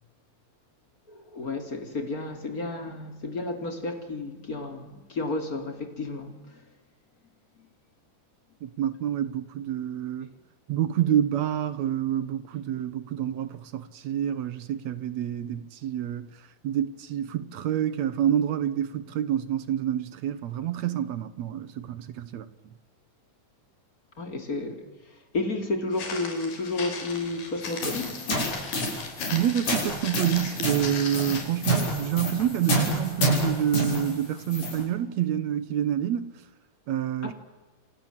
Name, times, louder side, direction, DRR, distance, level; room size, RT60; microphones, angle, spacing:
voice 1, 1.1-6.6 24.2-24.9 25.3-28.2 37.2-37.3, left 2 dB, 25° left, 3.0 m, -32 dB
voice 2, 8.6-10.3 10.7-16.3 16.6-22.5 29.3-36.3 36.9-37.3, right 10 dB, 65° right, 1.9 m, -28 dB
Walk footsteps, 25.9-31.6, left 5 dB, 85° left, 5.3 m, -38 dB
sound 1, 27.6-34.8, right 1 dB, 60° left, 8.5 m, -28 dB
29.5 x 26.0 x 7.4 m
omnidirectional pair, 4.0 m